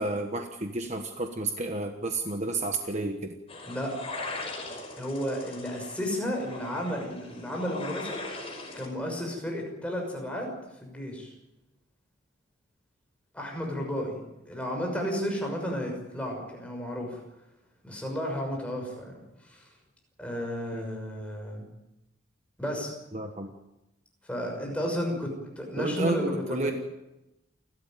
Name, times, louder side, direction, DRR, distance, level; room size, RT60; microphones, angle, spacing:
voice 1, 0.0-3.4 20.7-20.9 23.1-23.5 25.8-26.7, right 2 dB, 35° right, 5 dB, 1.3 m, -31 dB
sound 1, 3.5-8.9, left 2 dB, 30° left, 5.1 m, -40 dB
voice 2, 5.0-8.2 8.7-10.5 10.8-11.3 13.3-17.2 17.8-19.1 19.4-19.7 20.2-21.7 22.6-22.9 24.2-26.7, equal, 5° left, 0 dB, 6.1 m, -33 dB
29.0 x 13.0 x 9.1 m, 0.95 s
head